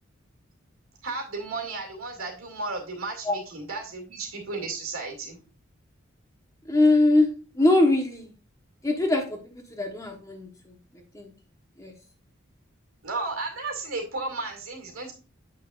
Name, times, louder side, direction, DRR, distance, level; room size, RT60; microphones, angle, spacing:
voice 1, 1.0-5.4 13.0-15.1, right 3 dB, 90° right, 2 dB, 2.2 m, -34 dB
voice 2, 6.7-7.3 7.5-8.3 8.8-9.4 9.8-10.5 11.1-11.3 11.8-11.9, left 2 dB, 15° left, 3 dB, 1.0 m, -21 dB
8.3 x 5.5 x 2.4 m, 0.34 s
head